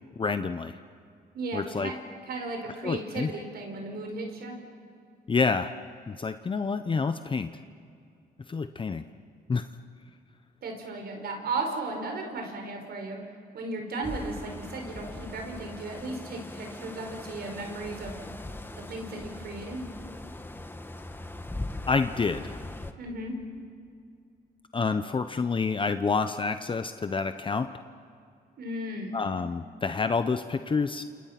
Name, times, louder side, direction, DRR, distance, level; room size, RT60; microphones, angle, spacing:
voice 1, 0.2-0.7 1.5-1.9 2.8-3.3 5.3-5.7 6.1-7.5 8.5-9.0 9.5-9.6 21.9-22.6 24.7-27.7 29.1-31.0, left 4 dB, 30° left, 9 dB, 0.8 m, -28 dB
voice 2, 1.3-1.9 2.2-4.6 10.6-13.2 13.5-18.2 18.9-19.8 23.0-23.4 28.6-29.2, right 2 dB, 70° right, 3 dB, 5.1 m, -35 dB
sound 1, 14.0-22.9, left 2 dB, 15° left, 1.5 m, -40 dB
29.5 x 28.5 x 5.9 m, 2.4 s
cardioid pair, 110°, 17 cm